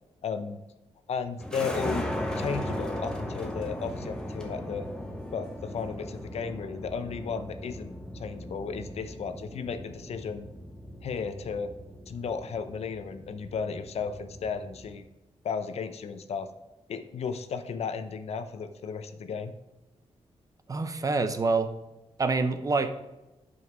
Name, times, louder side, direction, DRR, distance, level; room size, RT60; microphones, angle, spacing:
voice 1, 0.2-0.6 1.1-4.9 5.3-10.5 11.0-11.7 12.1-15.0 15.4-16.5 16.9-19.5, left 5 dB, 70° left, 10 dB, 0.7 m, -34 dB
sound 1, 1.4-15.0, left 1 dB, 5° left, 1.3 m, -38 dB
voice 2, 20.7-21.7 22.2-22.9, right 3 dB, 30° right, 9 dB, 0.7 m, -26 dB
9.4 x 5.6 x 6.1 m, 1.0 s
wide cardioid pair, 150°, 11 cm